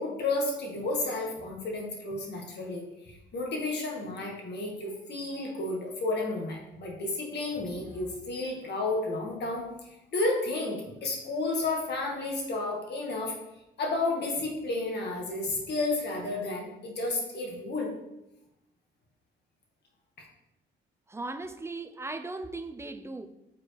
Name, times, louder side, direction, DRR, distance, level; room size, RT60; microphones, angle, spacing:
voice 1, 0.0-13.3 13.8-17.9 20.2-20.3, left 2 dB, 60° left, 1.8 m, -32 dB
voice 2, 21.1-23.3, right 2 dB, 15° right, 0.6 m, -37 dB
8.9 x 4.4 x 3.4 m
cardioid pair, 90°, 20 cm